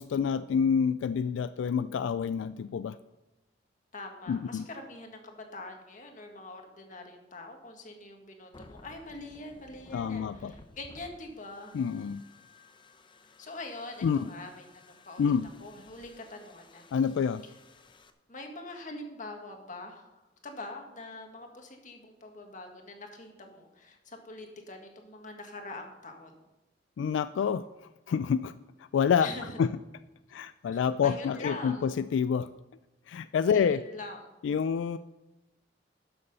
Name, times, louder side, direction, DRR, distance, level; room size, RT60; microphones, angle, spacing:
voice 1, 0.0-3.0 4.3-4.7 9.9-10.5 11.7-12.2 14.0-14.3 15.2-15.5 16.9-17.4 27.0-27.7 28.1-28.5 28.9-29.3 29.6-29.7 30.3-32.5 33.1-33.8 34.4-35.0, left 7 dB, 85° left, 13 dB, 0.3 m, -27 dB
voice 2, 3.9-11.8 13.4-15.3 15.6-16.9 18.3-26.3 29.2-29.6 30.7-31.9 33.5-34.3, left 2 dB, 45° left, 3 dB, 1.7 m, -44 dB
sound 1, 8.5-18.1, left 2 dB, 25° left, 0.7 m, -56 dB
12.5 x 6.8 x 5.4 m, 1.0 s
head